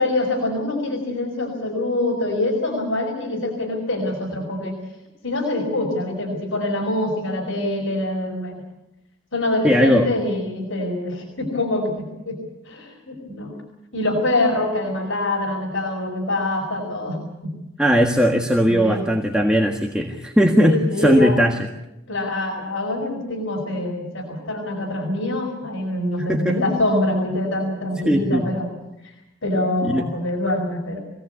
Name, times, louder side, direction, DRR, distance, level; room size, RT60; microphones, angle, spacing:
voice 1, 0.0-4.8 5.2-8.6 9.3-12.4 12.6-13.6 13.9-17.5 18.7-19.1 20.6-21.3 22.1-28.7 29.0-29.1 29.4-31.0, left 1 dB, 85° left, 0 dB, 5.1 m, -24 dB
voice 2, 9.6-10.1 17.8-21.7 26.2-26.6 28.0-28.5 29.8-30.0, equal, 5° right, 0 dB, 1.6 m, -18 dB
24.5 x 17.5 x 8.3 m, 0.95 s
head